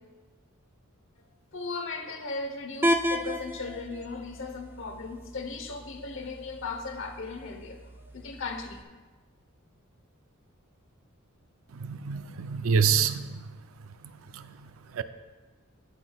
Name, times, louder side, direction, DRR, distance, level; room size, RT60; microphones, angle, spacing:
voice 1, 1.2-8.8, left 4 dB, 65° left, 6 dB, 0.9 m, -37 dB
sound 1, 2.8-8.8, equal, 10° right, 0.4 m, -34 dB
voice 2, 11.7-13.5 14.3-14.5 14.9-15.0, right 6 dB, 70° right, 11 dB, 0.5 m, -26 dB
16.5 x 5.9 x 2.3 m, 1.3 s
head